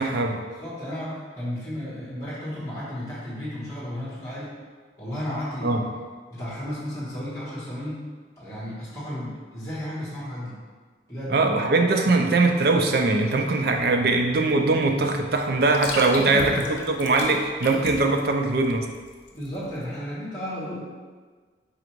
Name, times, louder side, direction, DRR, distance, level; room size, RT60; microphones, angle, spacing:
voice 1, 0.0-0.4 5.6-5.9 11.3-18.9, right 3 dB, 55° right, 4 dB, 0.4 m, -21 dB
voice 2, 0.6-4.5 5.0-5.7 6.3-8.0 8.4-10.6 11.1-11.5 12.0-12.1 16.2-16.9 19.3-20.9, equal, 15° left, -8 dB, 1.1 m, -33 dB
sound 1, 13.2-19.9, left 3 dB, 90° left, 0.6 m, -37 dB
3.8 x 2.5 x 4.4 m, 1.5 s
head